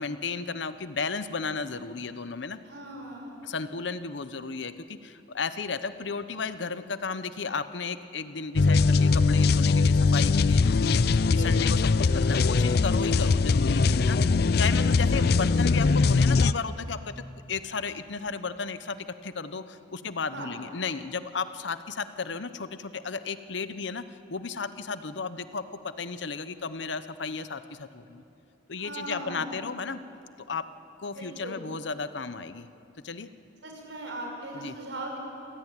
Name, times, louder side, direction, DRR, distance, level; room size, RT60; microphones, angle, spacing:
voice 1, 0.0-2.6 3.4-14.2 14.6-17.1 17.5-19.0 19.2-24.0 24.3-28.2 28.7-30.0 30.5-30.7 31.0-32.7 33.0-33.3 34.6-34.7, left 4 dB, 75° left, 12 dB, 0.9 m, -34 dB
voice 2, 2.6-3.4 11.3-11.6 15.1-15.5 20.2-20.5 28.8-29.5 31.1-31.6 33.6-35.2, right 1 dB, 75° right, 1 dB, 6.1 m, -39 dB
sound 1, 8.6-16.5, left 4 dB, 55° left, 0.5 m, -21 dB
27.0 x 17.0 x 9.1 m, 2.7 s
head